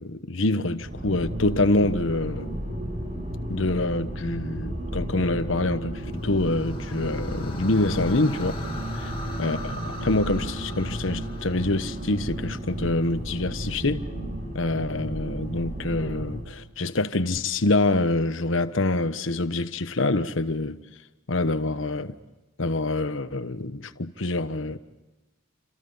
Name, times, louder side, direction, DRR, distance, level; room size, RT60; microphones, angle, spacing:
voice 1, 0.0-2.5 3.5-8.6 9.0-9.1 9.4-14.1 14.5-20.8 21.3-22.1 22.6-24.8, left 2 dB, 70° left, 1.2 m, -26 dB
sound 1, 0.8-16.5, equal, 40° right, 5.7 m, -33 dB
sound 2, 6.1-12.4, left 1 dB, 25° left, 2.8 m, -40 dB
29.0 x 26.5 x 5.6 m
head